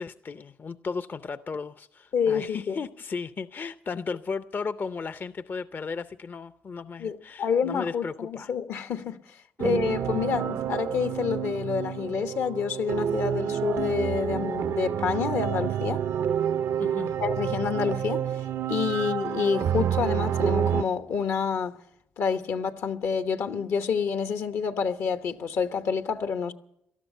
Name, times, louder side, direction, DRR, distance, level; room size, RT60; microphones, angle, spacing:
voice 1, 0.0-8.5 9.6-9.7 16.8-17.2, left 5 dB, 45° left, 0.6 m, -35 dB
voice 2, 2.1-2.8 7.0-9.2 9.6-16.0 17.2-18.2 18.7-21.8 22.2-26.5, left 6 dB, 75° left, 1.0 m, -28 dB
sound 1, 9.6-20.8, right 9 dB, 70° right, 0.5 m, -28 dB
18.5 x 13.0 x 5.4 m
supercardioid pair, 55°, 5 cm